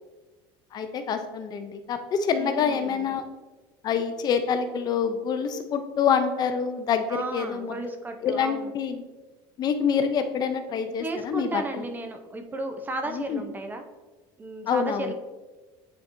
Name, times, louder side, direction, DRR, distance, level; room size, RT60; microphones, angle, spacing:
voice 1, 0.7-3.2 3.8-7.8 8.2-9.0 9.6-11.8 13.1-13.4 14.7-15.0, left 6 dB, 40° left, 8 dB, 0.5 m, -26 dB
voice 2, 2.4-3.1 7.1-8.7 10.9-13.8 14.4-15.1, right 2 dB, 15° right, 6 dB, 0.6 m, -34 dB
9.4 x 4.1 x 2.6 m, 1.2 s
cardioid pair, 145°, 11 cm